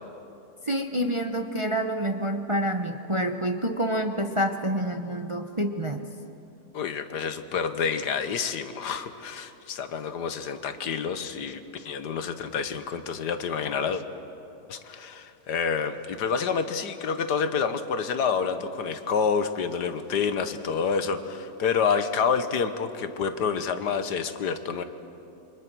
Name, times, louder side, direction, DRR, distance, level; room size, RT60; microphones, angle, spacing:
voice 1, 0.7-6.0, right 1 dB, 25° right, 6 dB, 0.7 m, -27 dB
voice 2, 6.7-14.0 14.7-24.8, left 6 dB, 85° left, 10 dB, 1.7 m, -28 dB
28.5 x 25.0 x 6.2 m, 2.8 s
omnidirectional pair, 1.7 m